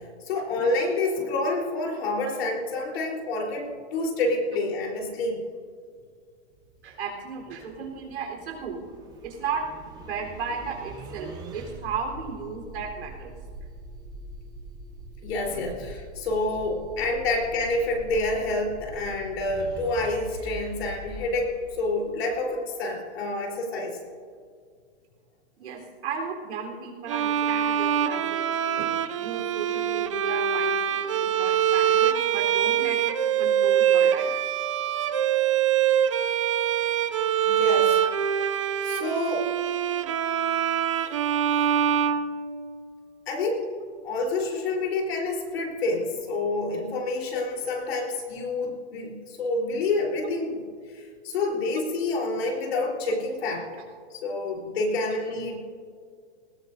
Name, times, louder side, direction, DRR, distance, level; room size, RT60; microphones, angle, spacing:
voice 1, 0.2-5.4 15.2-24.0 37.5-38.0 38.8-39.5 43.3-43.6 44.0-53.7 54.1-55.6, left 2 dB, 60° left, -1 dB, 3.9 m, -28 dB
sound 1, 6.5-22.5, right 2 dB, 10° right, 0.9 m, -43 dB
voice 2, 6.8-8.8 9.2-9.7 10.0-13.3 25.6-28.5 28.8-34.3 55.1-55.2, right 5 dB, 75° right, 0 dB, 3.9 m, -35 dB
Bowed string instrument, 27.1-42.9, right 9 dB, 30° right, 0.4 m, -24 dB
19.5 x 17.0 x 2.7 m, 2.1 s
hypercardioid pair, 165°, 34 cm